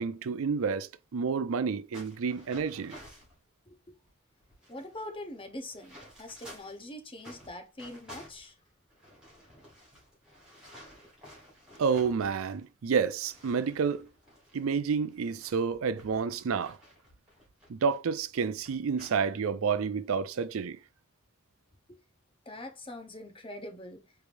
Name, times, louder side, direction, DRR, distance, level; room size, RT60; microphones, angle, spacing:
voice 1, 0.0-3.0 11.8-14.1 14.5-16.8 17.7-20.8, right 6 dB, 70° right, 0.4 m, -29 dB
sound 1, 1.9-3.4 4.1-4.2 4.4-6.8 7.2-12.6 12.9-18.0 18.4-19.2 19.6-19.8 20.3-20.6, equal, 5° right, 2.3 m, -53 dB
voice 2, 4.7-8.6 21.9-22.0 22.5-24.0, left 1 dB, 25° left, 0.8 m, -43 dB
4.6 x 3.4 x 2.6 m
head